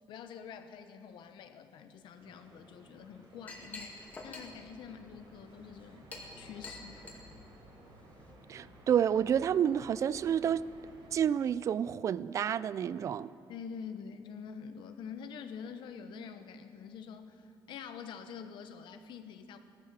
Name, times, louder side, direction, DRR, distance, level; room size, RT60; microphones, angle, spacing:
voice 1, 0.1-6.1 6.4-7.1 13.5-19.6, left 6 dB, 75° left, 9 dB, 1.0 m, -46 dB
sound 1, 2.2-11.1, right 1 dB, 75° right, 3.8 m, -56 dB
Chink clink, 3.0-8.3, left 2 dB, 20° left, 2.1 m, -50 dB
voice 2, 8.5-10.6 11.1-13.3, right 9 dB, 40° right, 18 dB, 0.3 m, -29 dB
16.5 x 12.0 x 7.4 m, 2.4 s
cardioid pair, 175°, 8 cm